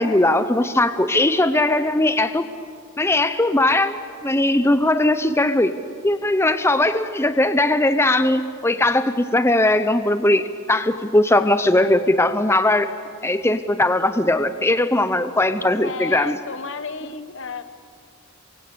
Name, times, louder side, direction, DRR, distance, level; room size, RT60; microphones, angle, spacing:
voice 1, 0.0-2.5 3.0-5.8 6.0-12.9 13.2-16.4, left 1 dB, 10° left, 10 dB, 0.7 m, -19 dB
voice 2, 15.8-17.6, left 5 dB, 60° left, 11 dB, 1.3 m, -32 dB
28.5 x 23.5 x 8.5 m, 2.2 s
head